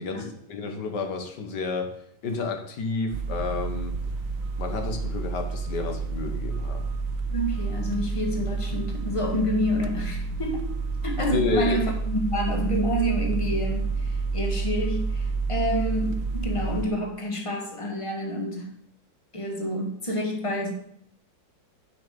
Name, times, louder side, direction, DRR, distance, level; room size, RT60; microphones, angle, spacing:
voice 1, 0.0-2.0 2.2-4.0 4.6-6.9 11.3-11.8, left 4 dB, 70° left, 5 dB, 1.8 m, -30 dB
sound 1, 3.1-16.9, right 4 dB, 65° right, 0.9 m, -29 dB
voice 2, 7.3-10.7 11.0-18.7 19.3-20.7, equal, 20° left, 2 dB, 1.5 m, -28 dB
7.1 x 6.1 x 6.8 m, 0.70 s
omnidirectional pair, 1.9 m